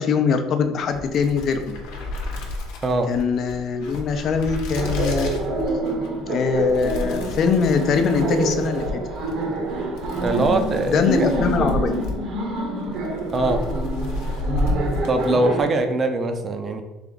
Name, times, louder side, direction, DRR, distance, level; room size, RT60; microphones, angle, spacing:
voice 1, 0.0-1.8 3.1-5.3 6.2-9.0 10.9-12.0, left 5 dB, 45° left, 7 dB, 0.5 m, -22 dB
sound 1, 0.8-15.7, left 2 dB, 85° left, 0.8 m, -31 dB
Laughter, 4.8-15.7, right 2 dB, 55° right, 0.9 m, -27 dB
voice 2, 10.2-11.0 13.3-13.7 15.1-16.8, right 2 dB, 25° right, 6 dB, 0.5 m, -22 dB
3.7 x 3.4 x 3.8 m, 1.1 s
cardioid pair, 135°, 0 cm